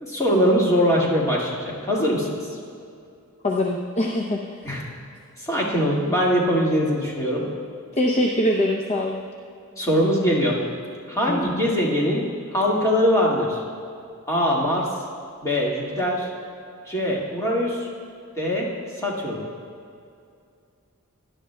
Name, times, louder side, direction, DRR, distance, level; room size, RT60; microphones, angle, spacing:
voice 1, 0.0-2.3 4.6-4.8 5.4-7.5 9.8-10.6 11.1-13.6 14.3-14.9 15.4-16.3 16.9-17.9 18.4-18.7 19.0-19.5, equal, 15° left, -4 dB, 1.9 m, -22 dB
voice 2, 3.4-4.6 7.9-9.3 11.3-11.6, left 1 dB, 30° left, 0 dB, 0.6 m, -23 dB
18.0 x 11.5 x 2.2 m, 2.4 s
head